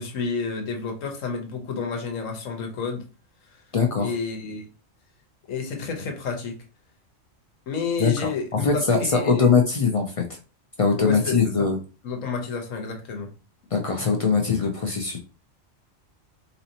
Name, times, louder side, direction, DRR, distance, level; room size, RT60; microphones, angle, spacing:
voice 1, 0.0-3.1 4.0-4.7 5.5-6.6 7.7-9.5 11.0-11.7 12.0-13.3, left 5 dB, 80° left, 1.3 m, -30 dB
voice 2, 3.7-4.1 8.0-8.3 8.6-10.2 10.8-11.8 13.7-15.2, left 5 dB, 65° left, 0.3 m, -21 dB
4.1 x 2.7 x 2.8 m
omnidirectional pair, 1.3 m